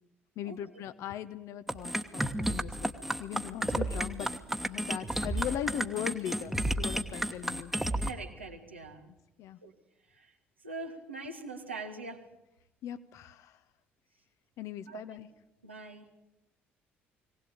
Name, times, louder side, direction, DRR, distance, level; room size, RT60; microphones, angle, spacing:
voice 1, 0.4-2.9 3.2-4.3 4.7-7.7 9.4-9.6 12.8-13.6 14.6-15.3, left 10 dB, 55° left, 12 dB, 1.0 m, -39 dB
sound 1, 1.7-8.1, right 1 dB, 5° right, 1.4 m, -32 dB
voice 2, 8.0-9.1 9.6-9.7 10.1-10.3 10.6-12.2 14.9-15.2 15.6-16.1, right 3 dB, 85° right, 2 dB, 1.8 m, -43 dB
20.0 x 18.0 x 8.7 m, 0.90 s
figure-of-eight pair, 50°, 6 cm